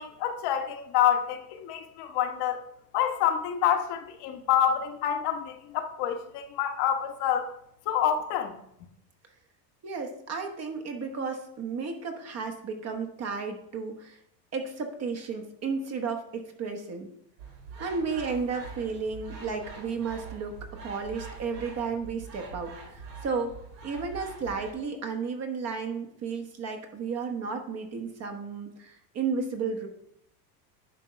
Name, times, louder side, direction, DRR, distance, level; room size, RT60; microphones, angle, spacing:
voice 1, 0.0-2.6 2.9-7.5 7.9-8.6, left 9 dB, 50° left, 4 dB, 1.2 m, -27 dB
voice 2, 9.8-14.2 14.5-17.1 17.8-20.5 20.8-22.7 23.2-23.6 23.8-29.9, right 5 dB, 30° right, 5 dB, 1.1 m, -33 dB
sound 1, 17.4-24.7, right 5 dB, 85° right, 2.9 m, -44 dB
9.8 x 3.6 x 5.5 m, 0.73 s
supercardioid pair, 130°, 50 cm